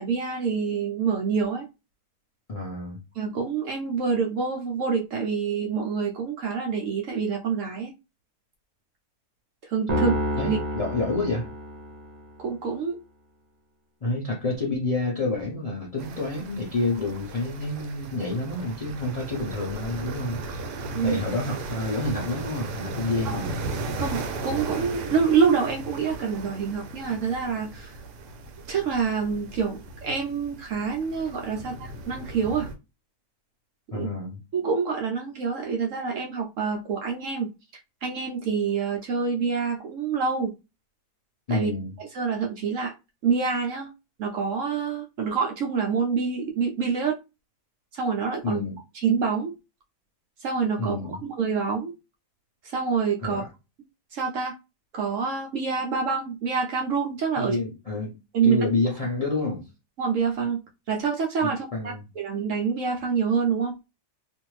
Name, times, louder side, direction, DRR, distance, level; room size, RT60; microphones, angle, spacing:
voice 1, 0.0-1.7 3.2-7.9 9.7-10.6 12.4-13.0 20.9-21.2 23.2-23.4 24.0-27.9 28.7-32.7 33.9-34.1 34.5-37.5 38.0-40.5 41.5-41.7 42.0-42.9 43.2-43.9 44.2-47.2 47.9-48.6 49.0-49.5 50.4-51.9 52.6-53.4 54.1-54.5 54.9-57.6 58.3-58.6 60.0-60.6 60.9-63.8, right 5 dB, 65° right, 0.8 m, -26 dB
voice 2, 2.5-3.0 9.9-10.1 10.4-11.5 14.0-20.7 21.0-23.6 33.9-34.4 41.5-41.9 48.4-48.8 50.8-51.2 53.2-53.5 57.4-58.1 58.4-59.7 61.4-62.1, left 2 dB, 75° left, 0.3 m, -29 dB
sound 1, 9.9-12.3, equal, 45° right, 0.5 m, -29 dB
sound 2, 16.0-32.7, right 2 dB, 85° right, 1.2 m, -36 dB
2.6 x 2.5 x 3.1 m
omnidirectional pair, 1.7 m